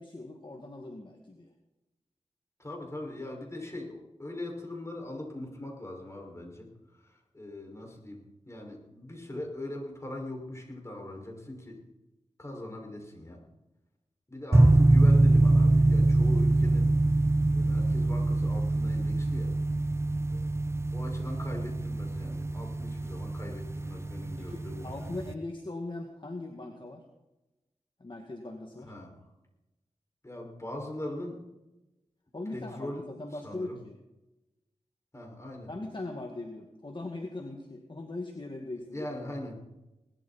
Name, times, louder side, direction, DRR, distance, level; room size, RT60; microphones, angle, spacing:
voice 1, 0.0-1.5 24.4-27.0 28.0-28.9 32.3-34.0 35.7-39.1, left 2 dB, 40° left, 3 dB, 2.2 m, -40 dB
voice 2, 2.6-11.8 12.4-13.4 14.3-16.9 17.5-19.5 20.3-20.4 20.9-25.2 28.8-29.3 30.2-31.4 32.5-33.8 35.1-35.7 38.9-39.6, left 1 dB, 25° left, 0 dB, 5.9 m, -41 dB
sound 1, 14.5-25.3, right 2 dB, 20° right, 0.9 m, -24 dB
19.5 x 13.0 x 4.4 m, 0.98 s
cardioid pair, 40°, 12 cm